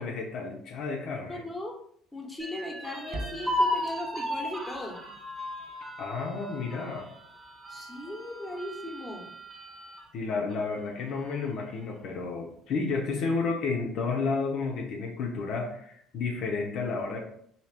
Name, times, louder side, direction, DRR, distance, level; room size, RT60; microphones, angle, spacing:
voice 1, 0.0-1.4 6.0-7.1 10.1-17.2, left 4 dB, 65° left, 1 dB, 0.6 m, -31 dB
voice 2, 1.3-1.8 2.1-5.0 7.7-9.2, left 1 dB, 10° left, 0 dB, 1.0 m, -38 dB
sound 1, 2.4-10.0 10.5-10.6 11.0-11.7, left 1 dB, 25° right, 1.0 m, -35 dB
sound 2, 3.1-7.4, right 1 dB, 40° right, 0.6 m, -46 dB
2.9 x 2.8 x 3.3 m, 0.66 s
supercardioid pair, 75°, 0 cm